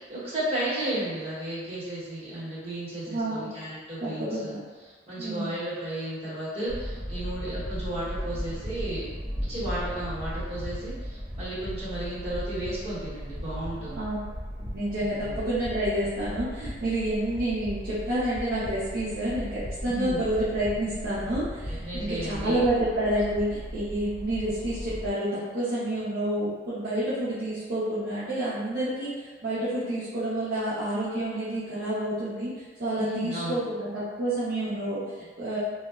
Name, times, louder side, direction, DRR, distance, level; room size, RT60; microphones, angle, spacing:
voice 1, 0.0-4.6 5.1-9.1 9.5-14.0 15.0-15.3 19.9-20.2 21.7-22.6 33.0-33.6, right 1 dB, 35° right, -10 dB, 1.0 m, -33 dB
voice 2, 3.1-3.5 4.0-4.6 5.2-5.5 14.0-14.2 14.6-35.6, right 1 dB, 55° right, -12 dB, 0.6 m, -29 dB
sound 1, 6.7-25.1, equal, 25° left, 0.6 m, -37 dB
2.7 x 2.1 x 2.3 m, 1.4 s
head